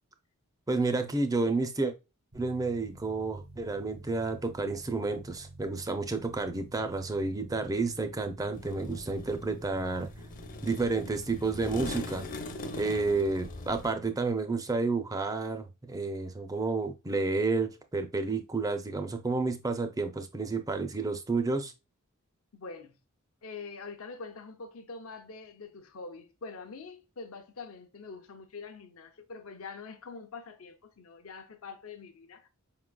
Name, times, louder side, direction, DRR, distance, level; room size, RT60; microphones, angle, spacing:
voice 1, 0.7-1.9 2.3-10.1 10.6-12.2 12.8-21.7, right 3 dB, 15° right, 0.5 m, -30 dB
sound 1, 2.3-13.0, right 1 dB, 80° right, 1.3 m, -49 dB
sound 2, 8.5-13.9, left 2 dB, 40° left, 0.6 m, -41 dB
voice 2, 22.5-22.9 23.4-32.5, left 4 dB, 75° left, 0.7 m, -44 dB
5.1 x 3.7 x 2.2 m
head